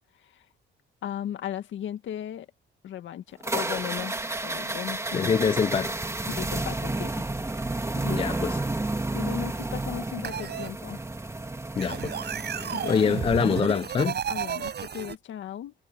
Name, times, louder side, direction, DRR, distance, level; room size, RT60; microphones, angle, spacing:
voice 1, 1.0-2.5 2.8-4.2 4.4-5.4 6.3-7.3 8.0-8.2 9.1-11.0 12.6-13.1 14.3-15.7, left 10 dB, 75° left, 2.0 m, -36 dB
sound 1, 3.4-13.6, right 2 dB, 15° right, 2.7 m, -31 dB
voice 2, 5.1-6.0 8.1-8.6 11.8-12.2 12.6-14.2, left 6 dB, 30° left, 0.4 m, -25 dB
sound 2, 10.2-10.7 11.8-15.2, right 8 dB, 55° right, 7.6 m, -32 dB
cardioid pair, 90°, 20 cm